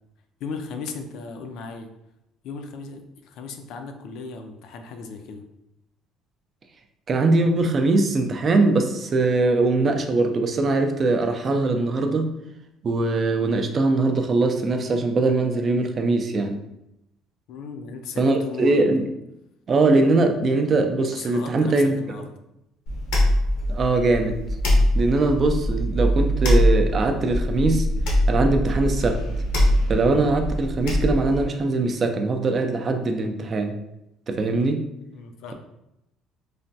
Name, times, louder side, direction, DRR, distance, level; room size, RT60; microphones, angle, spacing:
voice 1, 0.4-1.9 2.4-5.4 17.5-18.8 21.1-22.2 35.1-35.5, left 4 dB, 70° left, 6 dB, 0.3 m, -36 dB
voice 2, 7.1-12.3 12.8-16.6 18.2-19.1 19.7-21.9 23.7-24.4 24.9-27.9 28.3-29.2 29.9-33.8 34.3-34.8, right 3 dB, 35° right, 5 dB, 0.3 m, -21 dB
sound 1, 22.9-31.4, equal, 85° left, 0.7 m, -22 dB
3.0 x 2.2 x 2.7 m, 0.86 s
cardioid pair, 130°, 0 cm